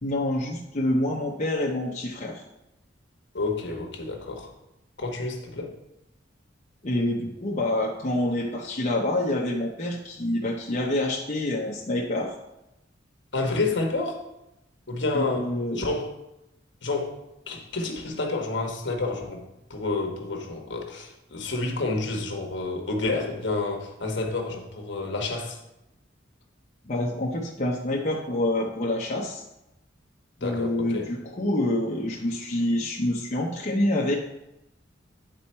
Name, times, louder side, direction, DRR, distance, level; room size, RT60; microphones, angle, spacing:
voice 1, 0.0-2.4 6.8-12.3 15.1-15.8 26.9-29.4 30.4-34.2, left 1 dB, 40° left, -2 dB, 0.8 m, -27 dB
voice 2, 3.3-4.5 5.0-5.7 13.3-14.2 14.9-15.5 15.8-16.1 16.8-17.1 17.5-19.4 19.7-25.6 30.4-31.1, left 3 dB, 65° left, 2 dB, 1.2 m, -29 dB
9.1 x 4.2 x 4.4 m, 0.89 s
head